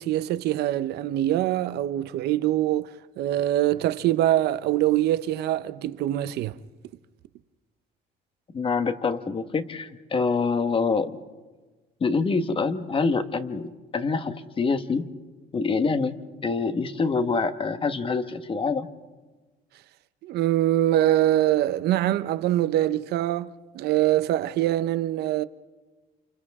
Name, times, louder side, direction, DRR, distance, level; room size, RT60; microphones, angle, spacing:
voice 1, 0.0-2.9 3.2-6.6 20.2-25.4, right 13 dB, 75° right, 0.8 m, -24 dB
voice 2, 8.5-11.1 12.0-15.1 15.5-16.2 16.4-18.9, left 4 dB, 30° left, 1.4 m, -25 dB
29.5 x 28.5 x 3.7 m
cardioid pair, 110°, 17 cm